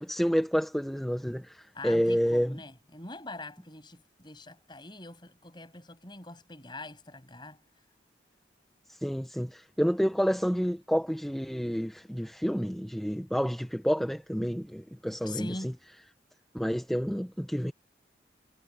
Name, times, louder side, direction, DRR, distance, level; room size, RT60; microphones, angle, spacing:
voice 1, 0.0-2.6 8.9-15.6 16.5-17.7, equal, ahead, 1.1 m, -29 dB
voice 2, 1.7-7.6 15.2-15.8, left 2 dB, 25° left, 7.4 m, -43 dB
head